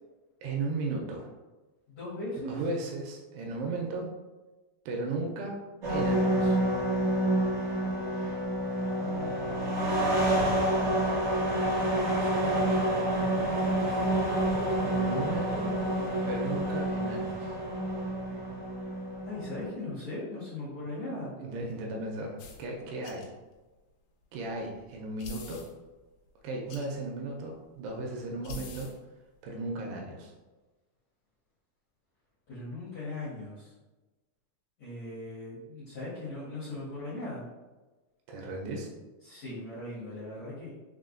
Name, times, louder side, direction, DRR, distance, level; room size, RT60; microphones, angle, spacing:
voice 1, 0.4-1.3 2.4-4.1 4.9-5.6 5.9-6.6 14.8-15.7 16.3-17.6 21.4-23.3 24.3-25.7 26.4-28.9 29.4-30.4 38.3-38.9, right 2 dB, 80° right, 0 dB, 2.5 m, -35 dB
voice 2, 1.9-2.6 9.0-10.6 11.9-14.0 15.0-15.1 15.8-16.4 19.2-21.3 32.5-33.7 34.8-37.4 39.2-40.7, left 2 dB, 65° left, -12 dB, 1.7 m, -40 dB
sound 1, 5.8-19.7, right 1 dB, 65° right, 1.1 m, -28 dB
sound 2, 22.4-22.6 23.0-23.3 23.5-23.6 25.2-25.7 26.7-26.9 28.4-29.0, left 5 dB, 80° left, 2.6 m, -43 dB
6.3 x 2.2 x 2.5 m, 1.2 s
omnidirectional pair, 4.8 m